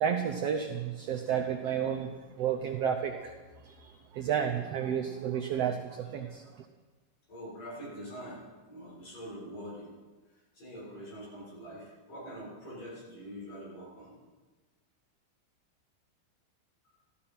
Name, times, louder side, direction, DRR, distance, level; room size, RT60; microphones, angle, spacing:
voice 1, 0.0-3.3 4.2-6.4, right 8 dB, 85° right, 3 dB, 1.4 m, -31 dB
voice 2, 7.3-9.9 10.3-14.1, equal, 50° left, -6 dB, 8.0 m, -44 dB
14.5 x 14.0 x 5.8 m, 1.3 s
omnidirectional pair, 3.9 m